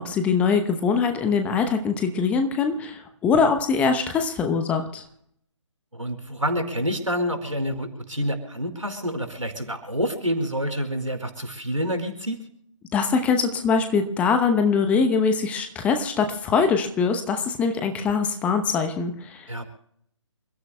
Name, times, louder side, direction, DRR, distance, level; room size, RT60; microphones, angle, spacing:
voice 1, 0.0-5.0 12.9-19.5, left 5 dB, 10° left, 6 dB, 0.9 m, -23 dB
voice 2, 5.9-12.4 19.5-19.7, equal, 85° right, 6 dB, 5.0 m, -28 dB
28.5 x 16.0 x 2.3 m, 0.70 s
figure-of-eight pair, 145°, 16 cm